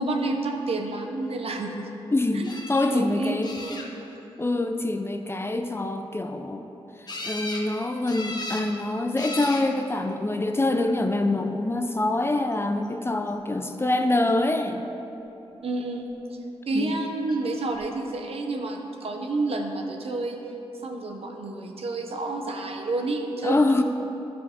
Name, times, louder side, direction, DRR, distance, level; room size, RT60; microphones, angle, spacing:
voice 1, 0.0-1.9 2.3-2.5 2.9-3.9 15.6-16.1 16.7-20.4 20.8-23.7, right 2 dB, 65° right, 2 dB, 0.8 m, -29 dB
voice 2, 2.1-3.5 4.4-6.7 7.0-14.8 16.7-16.9 23.4-23.8, left 2 dB, 25° left, 6 dB, 0.5 m, -25 dB
sound 1, 2.4-2.9 3.4-4.2 7.1-7.7 8.1-8.7 9.2-9.7 10.6-11.1 17.3-17.4 17.7-17.8, left 2 dB, 40° left, 1.0 m, -36 dB
11.0 x 4.8 x 3.7 m, 3.0 s
cardioid pair, 65°, 11 cm